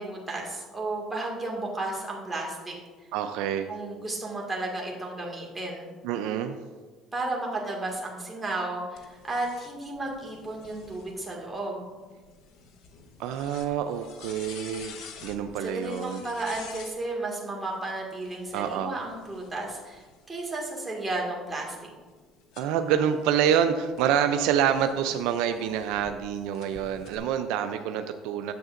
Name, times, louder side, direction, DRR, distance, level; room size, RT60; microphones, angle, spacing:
voice 1, 0.0-2.8 3.7-5.9 7.1-11.9 15.6-21.9, right 2 dB, 15° right, -2 dB, 1.9 m, -33 dB
voice 2, 3.1-3.7 6.0-6.6 13.2-15.0 15.2-16.2 18.5-18.9 22.6-28.5, right 9 dB, 80° right, 8 dB, 0.4 m, -27 dB
sound 1, 9.0-17.0 18.1-20.5 21.1-26.1 26.5-27.2, left 6 dB, 70° left, 0.8 m, -49 dB
9.3 x 7.3 x 2.5 m, 1.4 s
supercardioid pair, 100°, 0 cm